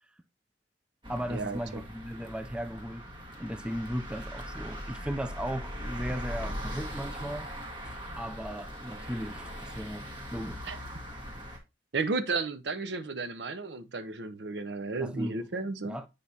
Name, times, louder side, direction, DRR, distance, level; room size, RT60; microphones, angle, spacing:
sound 1, 1.0-11.6, equal, 30° right, 1.7 m, -40 dB
voice 1, 1.1-3.1 3.4-7.5 7.8-10.7 15.0-15.4 15.8-16.1, equal, 5° right, 0.4 m, -36 dB
voice 2, 11.9-16.0, right 3 dB, 70° right, 0.7 m, -33 dB
8.2 x 4.9 x 2.8 m
head